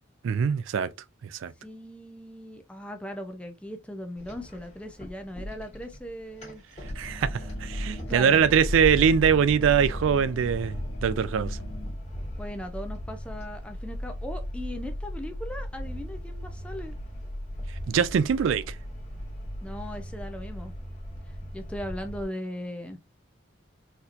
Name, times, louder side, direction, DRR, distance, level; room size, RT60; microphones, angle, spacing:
voice 1, 0.2-0.9 1.4-1.5 7.0-11.6 17.9-18.7, right 7 dB, 75° right, 0.3 m, -23 dB
voice 2, 1.6-6.6 8.1-8.5 12.4-16.9 19.6-20.7 21.5-23.0, equal, 5° left, 0.5 m, -38 dB
sound 1, 4.2-22.3, equal, 30° left, 1.4 m, -37 dB
sound 2, 6.8-11.9, left 1 dB, 80° left, 1.6 m, -38 dB
4.2 x 2.7 x 2.5 m
head